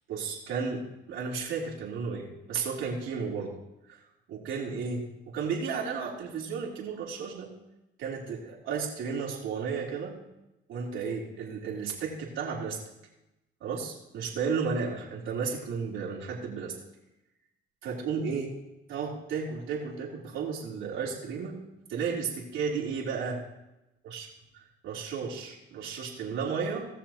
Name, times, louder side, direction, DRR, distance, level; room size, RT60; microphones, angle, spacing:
voice 1, 0.1-3.6 3.9-4.0 4.3-7.5 8.0-10.2 10.7-12.8 13.6-16.7 17.8-18.5 18.9-21.6 21.9-23.4 24.1-24.2 24.8-26.9, right 5 dB, 85° right, -4 dB, 3.1 m, -33 dB
19.0 x 6.9 x 3.0 m, 0.91 s
cardioid pair, 90°, 20 cm